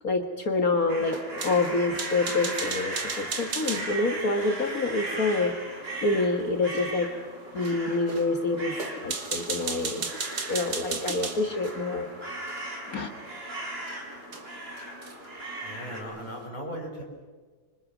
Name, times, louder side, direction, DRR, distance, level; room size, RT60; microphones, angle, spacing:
voice 1, 0.0-5.6 6.0-7.1 7.5-8.8 9.0-10.1 10.5-12.1 12.9-13.1, left 3 dB, 50° left, 6 dB, 1.8 m, -27 dB
sound 1, 0.9-16.0, right 2 dB, 30° right, 4.1 m, -38 dB
sound 2, 1.1-3.9 6.8-6.9 7.6-7.8 8.1-8.3 8.7-11.8 12.5-12.6 13.9-14.0 14.3-14.4 14.8-15.3, right 5 dB, 55° right, 2.4 m, -35 dB
voice 2, 15.6-17.0, equal, 20° left, -1 dB, 5.9 m, -37 dB
26.5 x 24.5 x 6.1 m, 1.4 s
omnidirectional pair, 2.1 m